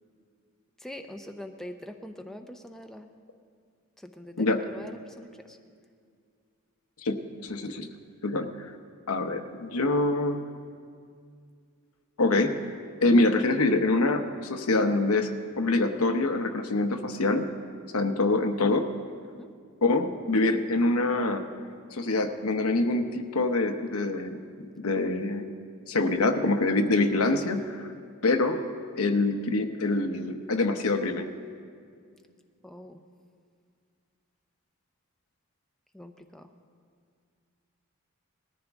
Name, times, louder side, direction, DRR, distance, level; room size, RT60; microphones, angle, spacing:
voice 1, 0.8-3.1 4.0-5.6 19.4-19.5 32.6-33.0 35.9-36.5, left 1 dB, ahead, 5 dB, 0.5 m, -43 dB
voice 2, 7.4-7.9 8.2-8.7 9.1-10.5 12.2-12.7 13.0-17.5 17.9-18.9 19.8-21.5 21.9-24.4 24.8-25.5 25.9-27.8 28.2-28.6 29.0-31.3, left 2 dB, 85° left, 7 dB, 0.9 m, -25 dB
19.5 x 14.0 x 3.5 m, 2.2 s
head